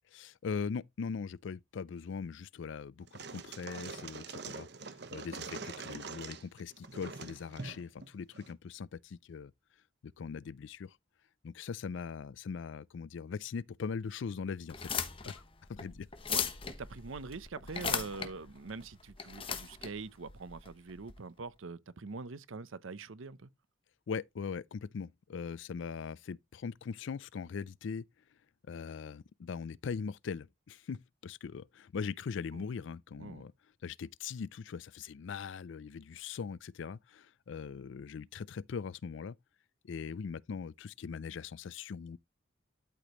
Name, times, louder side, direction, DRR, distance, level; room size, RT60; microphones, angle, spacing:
voice 1, 0.1-9.5 10.0-11.0 11.4-15.3 15.7-16.1 24.1-28.0 28.7-33.5 33.8-39.4 39.8-42.2, left 5 dB, 65° left, 0.4 m, -41 dB
sound 1, 3.0-8.5, right 4 dB, 55° right, 1.0 m, -44 dB
sound 2, 14.6-21.1, left 6 dB, 25° left, 1.1 m, -38 dB
voice 2, 16.3-23.5 32.5-32.6 33.2-33.5, right 4 dB, 80° right, 0.7 m, -44 dB
12.5 x 5.0 x 3.0 m
head